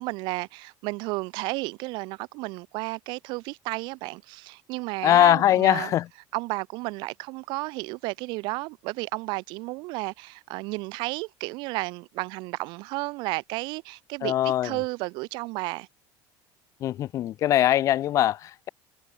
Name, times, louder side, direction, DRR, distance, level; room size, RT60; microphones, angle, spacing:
voice 1, 0.0-5.9 6.3-15.9, right 24 dB, 65° right, 3.1 m, -32 dB
voice 2, 5.0-6.0 14.2-14.7 16.8-18.7, left 12 dB, 40° left, 0.9 m, -21 dB
cardioid pair, 155°, 8 cm